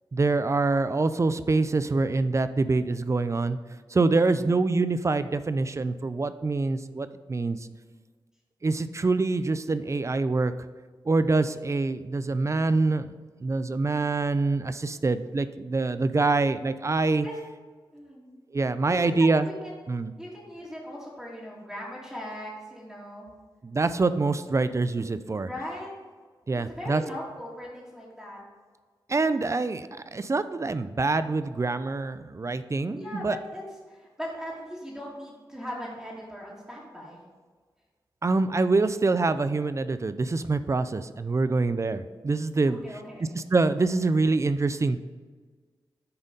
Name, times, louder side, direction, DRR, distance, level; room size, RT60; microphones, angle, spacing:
voice 1, 0.1-3.6 3.9-7.7 8.6-10.5 11.0-13.1 13.4-17.3 18.5-19.5 19.9-20.1 23.6-25.5 26.5-27.0 29.1-33.4 38.2-43.0 43.3-45.0, right 3 dB, 35° right, 13 dB, 0.5 m, -25 dB
voice 2, 17.9-18.4 18.9-19.8 20.2-23.3 24.5-24.6 25.5-25.9 26.5-28.4 32.9-33.6 33.9-37.2 42.7-43.3, equal, 5° right, -6 dB, 2.1 m, -39 dB
9.6 x 4.0 x 5.3 m, 1.5 s
cardioid pair, 55°, 9 cm